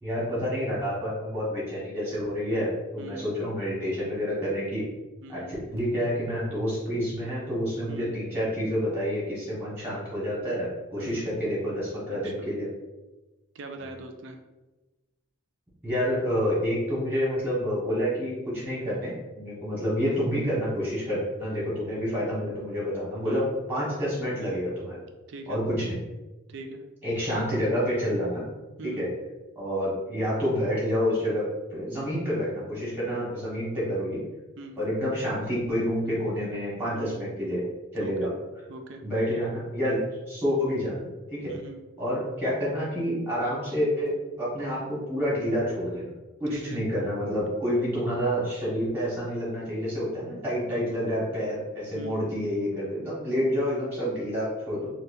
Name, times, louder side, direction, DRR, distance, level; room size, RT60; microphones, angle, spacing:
voice 1, 0.0-4.8 5.3-5.4 5.7-12.7 15.8-25.0 25.5-26.0 27.0-28.4 28.8-29.1 29.5-31.4 31.7-34.2 34.8-37.6 37.9-38.3 39.0-40.0 40.3-41.5 42.0-44.1 44.4-46.1 46.4-54.9, equal, 10° right, -8 dB, 1.3 m, -28 dB
voice 2, 3.0-3.3 5.2-5.6 6.9-7.0 7.9-8.1 11.0-11.2 12.1-12.5 13.5-14.4 23.2-23.5 25.3-25.6 26.5-26.8 28.8-29.1 34.6-34.8 36.9-37.3 38.0-38.3 38.7-39.0 41.5-41.8 46.5-46.8 51.9-52.2, right 2 dB, 55° right, 5 dB, 0.4 m, -42 dB
4.2 x 2.3 x 2.6 m, 1.1 s
head